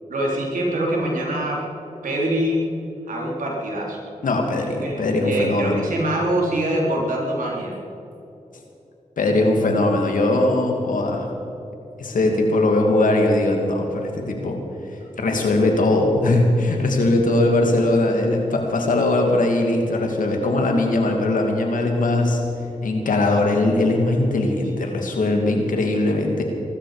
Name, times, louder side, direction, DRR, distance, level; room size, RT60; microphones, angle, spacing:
voice 1, 0.1-1.7 2.0-2.6 3.1-4.0 4.6-7.8 24.8-25.1, right 1 dB, 90° right, -2 dB, 3.7 m, -24 dB
voice 2, 4.2-5.8 9.2-11.3 12.0-14.6 15.2-22.4 22.8-26.4, left 2 dB, 85° left, 2 dB, 2.6 m, -20 dB
22.0 x 13.0 x 5.1 m, 2.8 s
cardioid pair, 40°, 13 cm